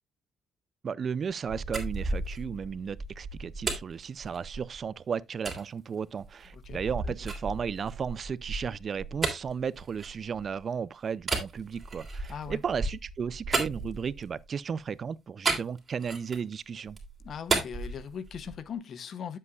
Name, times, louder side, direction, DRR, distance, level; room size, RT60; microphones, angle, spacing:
voice 1, 0.8-17.0, right 6 dB, 50° right, 0.4 m, -34 dB
sound 1, 1.3-4.8 5.4-5.6 6.2-10.6 11.2-14.4 15.4-16.5 16.9-18.7, right 3 dB, 30° right, 3.0 m, -34 dB
voice 2, 12.3-12.6 17.2-19.4, left 7 dB, 60° left, 0.7 m, -39 dB
9.4 x 7.6 x 2.3 m
cardioid pair, 90°, 0 cm